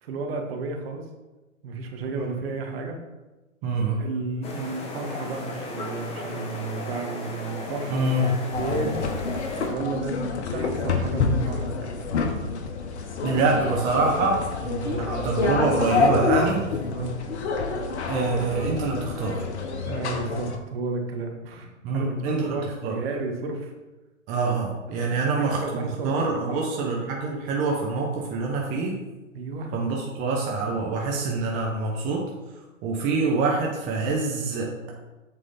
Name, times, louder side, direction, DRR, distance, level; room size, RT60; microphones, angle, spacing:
voice 1, 0.0-1.1 1.6-3.0 4.0-8.2 8.6-9.0 9.7-11.7 16.9-17.1 19.9-23.7 24.9-26.1 26.5-26.6 29.3-29.7, right 3 dB, 45° right, 3 dB, 1.5 m, -32 dB
voice 2, 3.6-4.0 7.9-8.4 13.2-16.7 18.1-19.5 21.8-23.0 24.3-29.0 29.7-32.2 32.6-34.9, right 3 dB, 20° right, -1 dB, 0.8 m, -26 dB
sound 1, 4.4-9.7, left 2 dB, 15° left, 1.0 m, -35 dB
sound 2, 8.5-20.6, left 4 dB, 55° left, 1.1 m, -27 dB
7.7 x 4.8 x 4.1 m, 1.1 s
hypercardioid pair, 125°, 40 cm